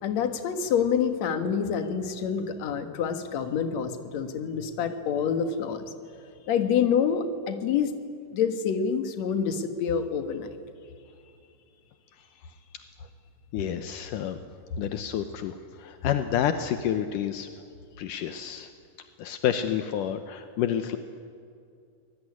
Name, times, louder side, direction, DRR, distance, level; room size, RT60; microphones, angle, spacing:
voice 1, 0.0-5.9 6.5-7.9 8.3-10.5, left 7 dB, 60° left, 8 dB, 2.6 m, -27 dB
voice 2, 13.5-14.4 14.8-17.5 18.0-18.7 19.2-21.0, left 10 dB, 75° left, 9 dB, 2.4 m, -29 dB
25.0 x 19.5 x 9.8 m, 2.4 s
omnidirectional pair, 4.0 m